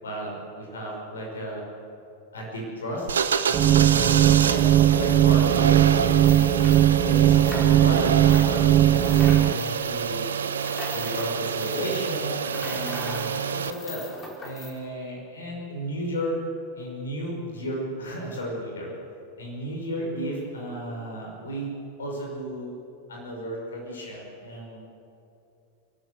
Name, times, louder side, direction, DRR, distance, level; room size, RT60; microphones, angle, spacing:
voice 1, 0.0-1.6 2.3-3.1 3.5-4.7 4.9-6.7 7.0-10.2 10.9-14.0 14.4-16.4 16.8-18.9 19.4-22.7 23.1-24.8, equal, 65° left, -1 dB, 5.5 m, -34 dB
sound 1, 3.0-13.7, right 6 dB, 65° right, 0.9 m, -27 dB
sound 2, 3.5-9.5, right 12 dB, 30° right, 0.6 m, -19 dB
sound 3, 6.0-8.0 8.2-14.7, left 1 dB, 15° left, 4.4 m, -40 dB
29.0 x 12.5 x 7.8 m, 2.8 s
figure-of-eight pair, 90°, 0 cm